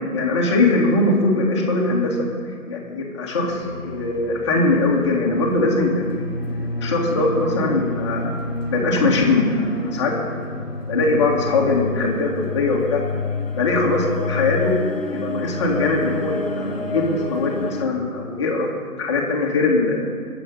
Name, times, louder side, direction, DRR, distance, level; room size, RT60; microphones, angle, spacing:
voice 1, 0.0-2.3 2.7-6.2 6.8-8.4 8.7-10.4 10.9-13.0 13.6-14.7 15.1-18.7 19.0-20.0, left 2 dB, 20° left, -2 dB, 1.9 m, -21 dB
sound 1, 3.4-17.9, left 2 dB, 40° left, 1.4 m, -29 dB
22.5 x 7.9 x 5.4 m, 2.2 s
figure-of-eight pair, 165°, 46 cm